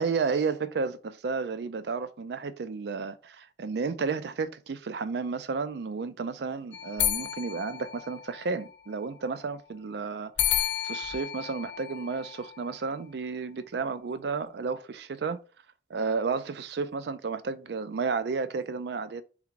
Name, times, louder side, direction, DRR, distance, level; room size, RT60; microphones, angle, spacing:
voice 1, 0.0-15.4 15.9-19.2, right 4 dB, 60° right, 0.4 m, -32 dB
sound 1, 6.7-8.7 10.4-12.8, left 10 dB, 80° left, 0.7 m, -32 dB
3.7 x 3.4 x 3.1 m
head